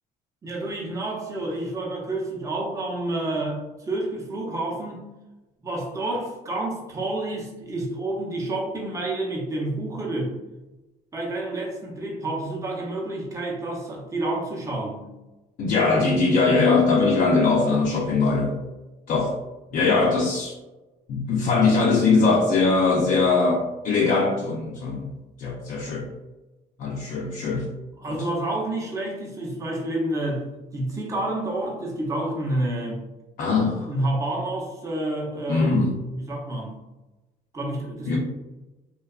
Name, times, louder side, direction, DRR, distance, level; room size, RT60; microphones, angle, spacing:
voice 1, 0.4-5.0 5.6-10.3 11.1-15.0 28.0-30.5 30.7-33.0 33.9-36.8 37.5-38.2, right 1 dB, 20° right, -2 dB, 0.6 m, -29 dB
voice 2, 15.6-18.6 19.1-19.3 19.7-20.6 21.1-25.1 25.4-26.1 26.8-27.7 28.1-28.2 33.4-33.9 35.5-36.0 38.1-38.2, left 4 dB, 55° left, -2 dB, 0.4 m, -21 dB
2.7 x 2.2 x 2.3 m, 1.1 s
cardioid pair, 110°, 17 cm